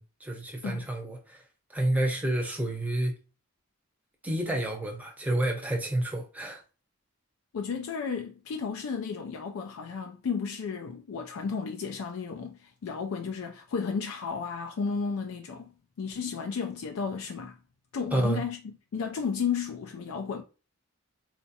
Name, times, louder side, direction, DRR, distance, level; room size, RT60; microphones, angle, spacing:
voice 1, 0.0-1.4 1.7-3.1 4.2-6.6 18.1-18.4, right 1 dB, 5° right, 0.6 m, -29 dB
voice 2, 7.5-15.7 16.0-17.6 17.9-20.4, left 5 dB, 70° left, 0.4 m, -33 dB
4.0 x 2.4 x 2.7 m
head